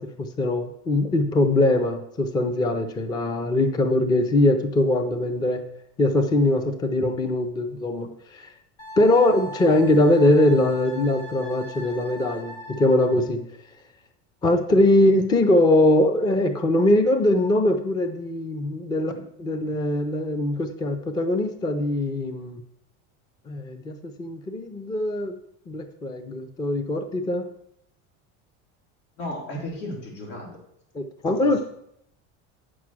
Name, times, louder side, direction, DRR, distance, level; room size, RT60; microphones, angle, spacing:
voice 1, 0.0-5.6 6.0-8.5 9.0-13.4 14.4-22.6 23.5-25.4 25.7-27.5 30.9-31.6, left 1 dB, 10° left, 8 dB, 0.4 m, -22 dB
Wind instrument woodwind instrument, 8.8-13.2, equal, 60° left, 2.7 m, -40 dB
voice 2, 29.2-30.5 31.2-31.6, left 1 dB, 85° left, -2 dB, 4.2 m, -34 dB
8.9 x 6.2 x 6.0 m, 0.74 s
cardioid pair, 165°, 34 cm